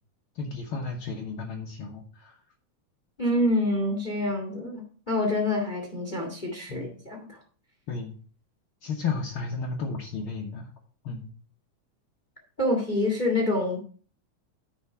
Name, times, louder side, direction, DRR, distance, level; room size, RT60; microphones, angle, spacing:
voice 1, 0.3-2.4 6.7-7.0 7.9-8.1 8.8-10.7 11.0-11.3, left 4 dB, 60° left, 0 dB, 1.5 m, -33 dB
voice 2, 3.2-7.4 12.6-13.8, left 1 dB, 20° left, 0 dB, 1.4 m, -27 dB
10.5 x 4.5 x 5.8 m, 0.42 s
omnidirectional pair, 3.6 m